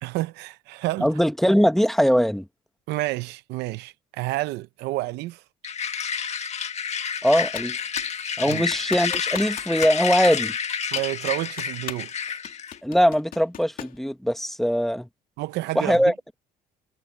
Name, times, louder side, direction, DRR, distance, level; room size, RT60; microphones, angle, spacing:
voice 1, 0.0-1.1 2.9-5.4 8.4-8.6 10.9-12.1 15.4-16.0, right 18 dB, 85° right, 0.7 m, -29 dB
voice 2, 1.0-2.5 7.2-7.8 8.4-10.5 12.8-15.1 15.7-16.1, equal, ahead, 1.1 m, -21 dB
sound 1, 5.6-12.8, left 7 dB, 40° left, 1.7 m, -29 dB
Computer keyboard, 7.5-8.2 8.5-10.0 10.3-10.4 11.0-12.1 12.4-14.0, left 10 dB, 55° left, 2.5 m, -38 dB
cardioid pair, 110°, 17 cm